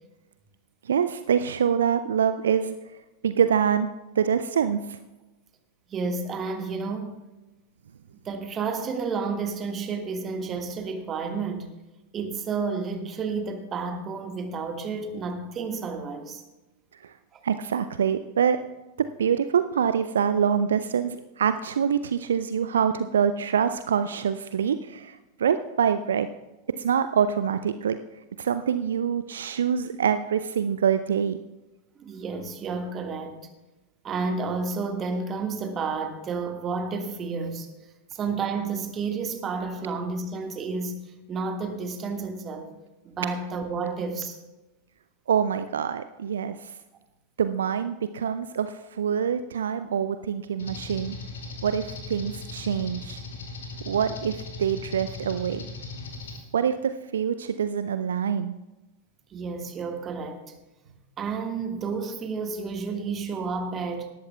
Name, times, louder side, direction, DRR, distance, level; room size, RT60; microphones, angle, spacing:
voice 1, 0.8-2.8 3.2-3.9 4.2-5.0 17.0-17.1 17.4-18.6 19.2-26.3 26.8-28.0 28.4-31.4 45.3-46.7 47.4-51.2 51.6-53.2 53.9-55.7 56.5-58.6, right 7 dB, 65° right, 0.4 m, -25 dB
voice 2, 5.9-7.2 8.2-11.7 12.1-16.4 17.3-17.4 32.0-33.4 34.0-37.7 38.1-41.0 41.3-42.7 43.0-44.4 46.5-46.6 48.2-48.3 59.3-60.5 61.2-64.1, right 4 dB, 25° right, 1.6 m, -31 dB
sound 1, 50.6-56.4, left 3 dB, 65° left, 2.4 m, -38 dB
18.5 x 13.0 x 2.3 m
figure-of-eight pair, 90°, 0 cm